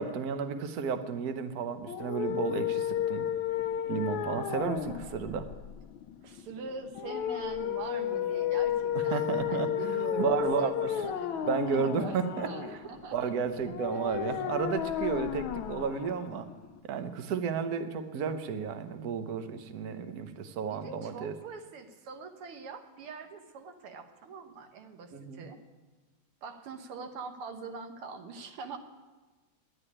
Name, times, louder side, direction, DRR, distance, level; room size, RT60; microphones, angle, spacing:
voice 1, 0.0-3.3 3.9-5.5 9.1-11.0 11.5-12.8 13.1-16.5 16.9-21.3 25.1-25.4, right 6 dB, 55° right, 9 dB, 1.2 m, -32 dB
sound 1, 1.8-16.8, left 10 dB, 75° left, 1.4 m, -33 dB
voice 2, 6.2-13.3 13.6-14.2 20.7-25.6 26.4-28.8, right 4 dB, 80° right, 7 dB, 2.1 m, -43 dB
10.5 x 9.9 x 9.8 m, 1.3 s
omnidirectional pair, 2.4 m